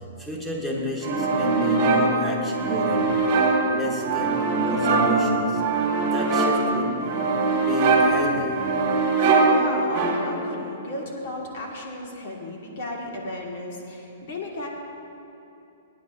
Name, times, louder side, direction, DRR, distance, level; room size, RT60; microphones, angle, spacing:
voice 1, 0.2-3.3 3.7-5.6 6.0-7.1 7.7-8.7, equal, ahead, -3 dB, 1.1 m, -29 dB
sound 1, 1.0-10.5, right 3 dB, 35° right, 1.7 m, -22 dB
voice 2, 9.5-14.7, left 1 dB, 45° left, -1 dB, 1.6 m, -34 dB
23.0 x 9.5 x 2.5 m, 2.9 s
hypercardioid pair, 170°, 0 cm